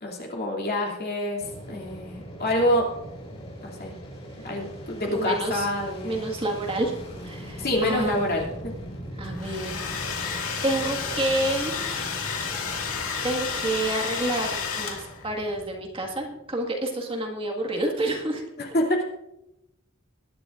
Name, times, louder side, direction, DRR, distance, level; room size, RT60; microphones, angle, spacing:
voice 1, 0.0-2.9 3.6-3.9 4.4-6.2 7.6-8.7 18.6-19.0, left 1 dB, 45° left, -1 dB, 2.7 m, -27 dB
Fixed-wing aircraft airplane, 1.4-16.6, equal, 30° left, 5.2 m, -41 dB
voice 2, 5.1-5.7 6.0-7.0 7.2-8.3 9.2-9.7 10.1-10.3 10.6-11.7 13.2-18.4, right 1 dB, 25° right, 0 dB, 1.8 m, -28 dB
Domestic sounds home sounds, 9.2-15.3, left 6 dB, 80° left, 2.1 m, -31 dB
20.5 x 11.5 x 2.5 m, 0.89 s
head